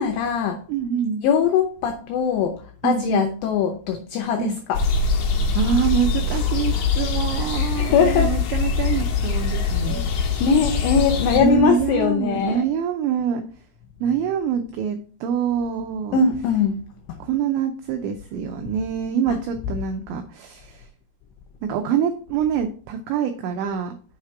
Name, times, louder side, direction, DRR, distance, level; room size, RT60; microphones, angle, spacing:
voice 1, 0.0-0.6 1.2-4.8 5.4-5.5 7.8-8.3 10.2-12.6 16.1-16.8 17.1-17.2 19.3-19.4, left 6 dB, 85° left, 5 dB, 2.5 m, -21 dB
voice 2, 0.7-1.2 2.8-3.3 4.4-4.6 5.6-10.0 11.4-13.4 14.0-16.2 17.2-20.9 21.6-24.0, right 8 dB, 90° right, 5 dB, 2.5 m, -25 dB
sound 1, 4.7-11.4, left 5 dB, 70° left, 2.6 m, -23 dB
7.3 x 5.0 x 4.5 m, 0.41 s
omnidirectional pair, 5.9 m